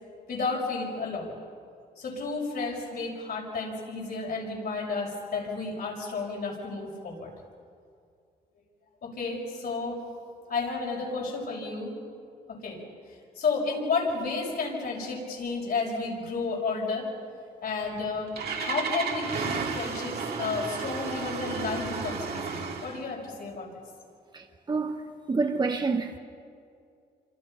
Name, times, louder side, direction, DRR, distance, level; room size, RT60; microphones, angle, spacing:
voice 1, 0.3-1.3 2.0-7.3 9.0-10.0 10.5-12.0 12.5-12.8 13.1-17.1 17.6-18.3 18.6-23.7, left 4 dB, 70° left, 6.6 m, -32 dB
Engine starting, 17.8-23.0, right 5 dB, 75° right, 3.1 m, -33 dB
voice 2, 24.3-26.2, right 4 dB, 25° right, 1.2 m, -28 dB
28.0 x 26.0 x 5.8 m
cardioid pair, 115°, 17 cm